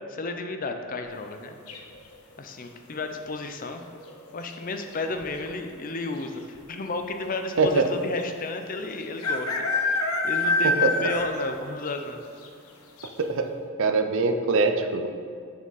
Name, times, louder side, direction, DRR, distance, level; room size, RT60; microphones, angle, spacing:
voice 1, 0.1-1.6 2.4-3.8 4.3-12.2, left 3 dB, 40° left, 6 dB, 0.5 m, -33 dB
sound 1, 1.7-2.1 4.0-4.3 4.6-4.7 4.9-5.5 6.2-6.3 6.5-6.6 8.2-8.3 9.2-11.5 11.9-12.0 12.4-12.5 13.0-13.1, left 3 dB, 85° left, 0.8 m, -26 dB
voice 2, 7.6-7.9 10.6-11.1 13.2-13.5 13.8-15.1, right 3 dB, 60° right, 7 dB, 0.5 m, -23 dB
7.1 x 6.4 x 4.0 m, 2.4 s
head